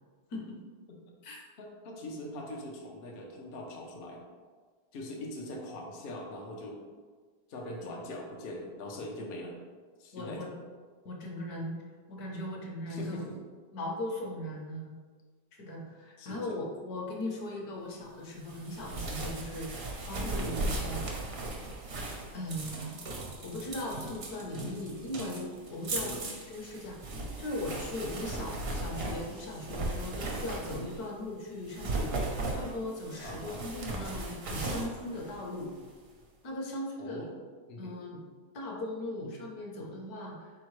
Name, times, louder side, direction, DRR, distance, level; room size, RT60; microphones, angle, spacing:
voice 1, 1.6-4.2 4.9-6.8 7.5-9.5 10.0-10.5 12.9-13.4 16.2-16.5 20.2-20.6 26.0-26.2 33.2-33.6 37.0-37.3 37.7-37.9, left 1 dB, 85° left, 0 dB, 0.5 m, -42 dB
voice 2, 10.1-10.5 11.0-11.8 12.1-13.3 13.7-15.0 15.5-19.7 20.0-21.0 22.3-23.0 23.4-27.0 27.4-32.2 32.5-35.7 36.4-37.3 37.8-38.2 38.5-40.5, left 1 dB, 65° left, -1 dB, 1.2 m, -38 dB
sound 1, 18.4-31.1 31.6-35.9, right 2 dB, 60° right, 0.6 m, -37 dB
4.2 x 3.6 x 3.1 m, 1.5 s
omnidirectional pair, 1.9 m